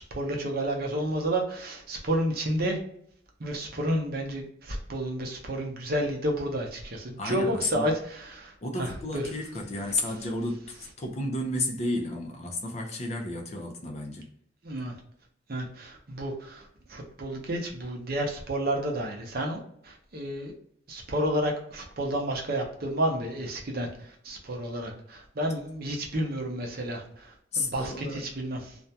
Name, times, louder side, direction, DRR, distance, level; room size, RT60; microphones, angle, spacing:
voice 1, 0.0-2.8 3.4-9.2 14.6-14.9 15.5-20.5 20.9-28.8, right 1 dB, 50° right, 0.6 m, -31 dB
voice 2, 7.2-7.9 8.6-14.3 27.5-28.2, left 2 dB, 35° left, 0.4 m, -32 dB
2.4 x 2.2 x 2.7 m
head